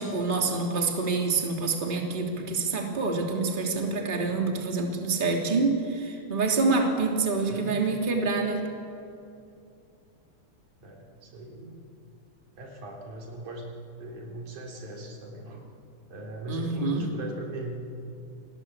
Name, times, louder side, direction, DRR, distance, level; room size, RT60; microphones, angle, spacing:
voice 1, 0.0-8.7 16.5-17.0, right 3 dB, 15° right, 2 dB, 2.8 m, -27 dB
voice 2, 7.5-7.8 10.8-11.8 12.6-13.7 14.0-15.7 16.1-17.7, right 1 dB, 75° right, 0 dB, 5.1 m, -39 dB
29.0 x 20.0 x 8.7 m, 2.6 s
omnidirectional pair, 3.5 m